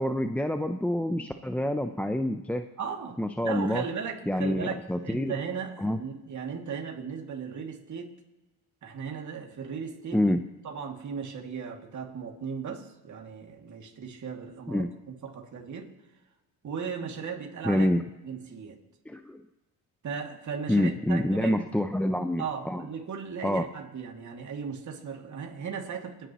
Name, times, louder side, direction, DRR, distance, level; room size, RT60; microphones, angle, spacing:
voice 1, 0.0-2.6 3.2-3.8 4.3-5.3 5.8-6.0 10.1-10.4 14.7-14.9 17.6-18.0 19.1-19.4 20.7-22.9 23.4-23.7, left 1 dB, 5° left, 6 dB, 0.5 m, -27 dB
voice 2, 2.8-8.2 8.8-10.2 10.6-14.8 15.2-15.9 16.6-17.9 18.2-18.8 20.0-21.7 22.4-26.3, right 6 dB, 45° right, 1 dB, 2.5 m, -37 dB
30.0 x 10.5 x 3.1 m, 1.1 s
cardioid pair, 105°, 39 cm